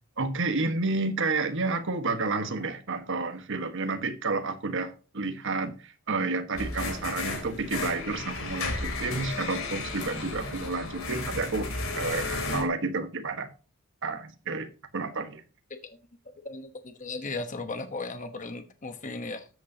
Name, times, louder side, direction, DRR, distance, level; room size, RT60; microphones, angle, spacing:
voice 1, 0.2-13.5 14.0-14.7 14.9-15.4, right 3 dB, 65° right, 1.4 m, -30 dB
sound 1, 6.5-12.6, left 3 dB, 70° left, 3.5 m, -33 dB
voice 2, 16.4-19.5, left 3 dB, 35° left, 1.1 m, -36 dB
13.5 x 8.4 x 2.9 m
head